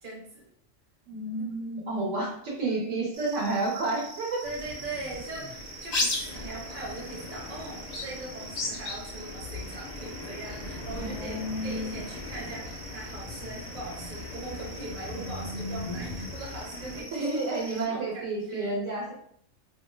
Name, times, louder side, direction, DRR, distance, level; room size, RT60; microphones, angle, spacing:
voice 1, 0.0-0.5 1.6-1.7 4.4-18.8, right 2 dB, 35° right, -3 dB, 0.8 m, -41 dB
voice 2, 1.1-4.4 11.0-12.0 15.2-16.3 17.1-19.1, right 2 dB, 75° right, -2 dB, 1.2 m, -31 dB
sound 1, 3.1-17.9, right 3 dB, 55° right, 0.4 m, -46 dB
sound 2, 4.4-17.0, left 3 dB, 70° left, 0.4 m, -37 dB
2.7 x 2.2 x 3.1 m, 0.66 s
omnidirectional pair, 1.3 m